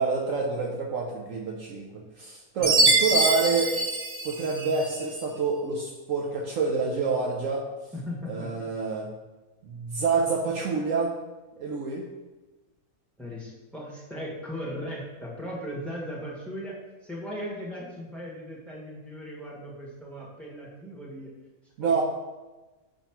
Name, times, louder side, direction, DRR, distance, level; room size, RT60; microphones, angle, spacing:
voice 1, 0.0-1.9 2.2-3.7 4.2-7.6 8.3-9.1 9.6-11.1 11.6-12.1 21.8-22.0, right 4 dB, 65° right, 0 dB, 1.0 m, -27 dB
voice 2, 2.6-2.9 7.9-8.7 13.2-21.3 21.8-22.0, equal, ahead, -4 dB, 1.2 m, -38 dB
Chime, 2.6-4.9, right 2 dB, 30° right, 0.7 m, -24 dB
6.7 x 3.1 x 5.7 m, 1.2 s
omnidirectional pair, 1.6 m